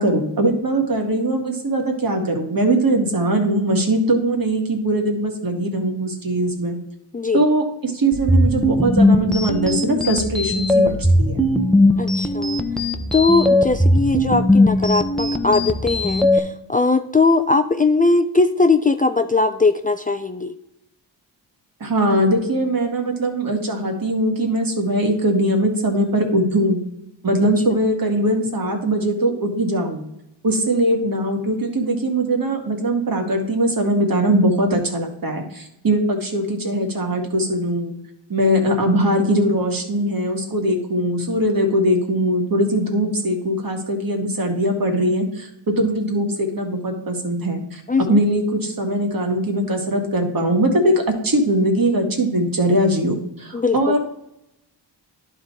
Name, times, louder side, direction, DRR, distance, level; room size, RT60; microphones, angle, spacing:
voice 1, 0.0-6.8 7.3-11.5 21.8-26.8 27.2-30.1 30.4-37.9 38.3-54.0, right 1 dB, 45° right, 3 dB, 2.1 m, -21 dB
sound 1, 8.1-16.4, left 1 dB, ahead, 0.9 m, -18 dB
voice 2, 12.0-12.6 13.1-20.5 47.9-48.2 53.5-53.9, left 3 dB, 20° left, 7 dB, 0.5 m, -19 dB
11.0 x 4.0 x 4.7 m, 0.83 s
cardioid pair, 55°, 46 cm